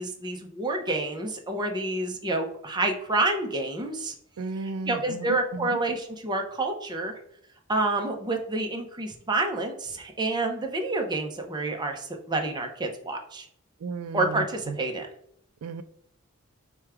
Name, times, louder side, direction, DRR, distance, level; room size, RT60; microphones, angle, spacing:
voice 1, 0.0-4.1 4.6-7.1 7.7-13.5 14.1-15.1, right 2 dB, 20° right, 2 dB, 0.6 m, -28 dB
voice 2, 4.4-5.8 13.8-14.8 15.6-15.8, right 4 dB, 75° right, 10 dB, 0.3 m, -34 dB
4.5 x 2.2 x 4.8 m, 0.69 s
head